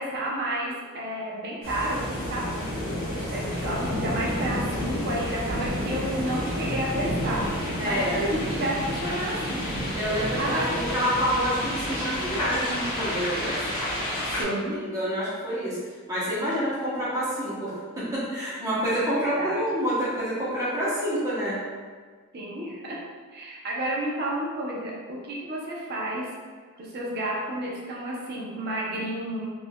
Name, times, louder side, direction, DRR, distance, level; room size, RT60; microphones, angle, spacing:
voice 1, 0.0-2.4 3.1-9.7 10.4-10.8 14.4-14.8 19.0-19.6 22.3-23.0 23.3-26.3 26.8-29.5, right 1 dB, 45° right, -4 dB, 0.6 m, -31 dB
sound 1, 1.6-14.4, left 1 dB, 80° left, 1.2 m, -30 dB
sound 2, 3.2-10.6, equal, 80° right, 0.8 m, -37 dB
voice 2, 7.8-8.2 9.9-13.6 14.3-15.8 16.1-21.6, equal, 15° right, -9 dB, 0.9 m, -28 dB
3.4 x 2.6 x 2.2 m, 1.5 s
head